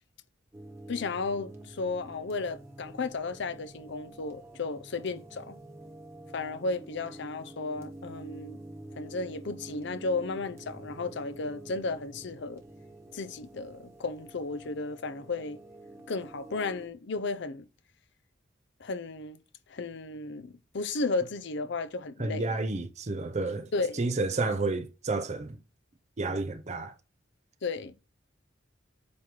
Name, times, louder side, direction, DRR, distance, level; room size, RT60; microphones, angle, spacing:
sound 1, 0.5-16.9, right 1 dB, 15° right, 1.5 m, -48 dB
voice 1, 0.9-5.6 6.3-8.6 9.0-12.6 13.1-15.6 16.1-17.7 18.8-19.4 19.7-22.6 23.7-24.0 27.6-27.9, left 3 dB, 65° left, 0.6 m, -34 dB
voice 2, 22.2-23.7 23.9-25.6 26.2-26.9, right 3 dB, 35° right, 0.7 m, -30 dB
8.4 x 3.1 x 6.0 m
head